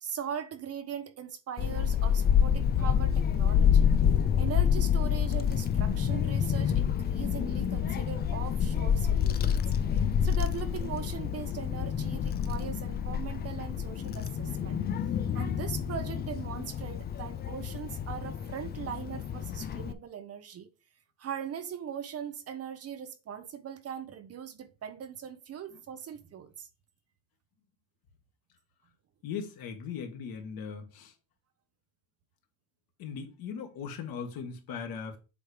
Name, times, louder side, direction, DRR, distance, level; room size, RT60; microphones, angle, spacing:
voice 1, 0.0-3.9 4.4-9.6 9.9-14.8 15.3-20.7 21.2-26.7, right 8 dB, 35° right, 0.8 m, -40 dB
Child speech kid speaking / Wind, 1.6-19.9, left 8 dB, 25° left, 0.4 m, -28 dB
voice 2, 29.2-31.1 33.0-35.2, left 6 dB, 50° left, 1.8 m, -39 dB
7.9 x 3.2 x 4.9 m
supercardioid pair, 110°, 44 cm